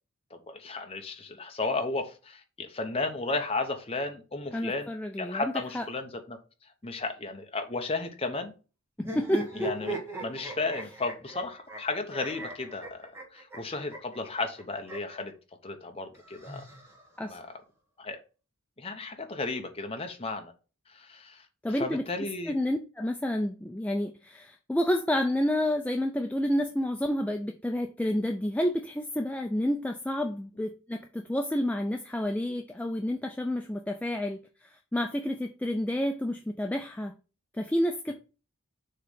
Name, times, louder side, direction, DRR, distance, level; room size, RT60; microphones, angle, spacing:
voice 1, 0.3-4.9 5.2-6.4 6.8-8.5 9.6-15.3 15.6-16.6 17.2-17.5 18.0-18.2 18.8-20.5 20.9-22.5, left 3 dB, 25° left, 1.0 m, -34 dB
voice 2, 4.5-5.8 9.0-9.5 17.2-17.4 21.6-22.0 22.5-37.1 37.5-38.1, left 1 dB, 5° left, 0.3 m, -29 dB
low laugh reverbed, 9.0-15.2 16.1-17.3, right 1 dB, 10° right, 1.2 m, -39 dB
6.7 x 3.2 x 5.5 m
head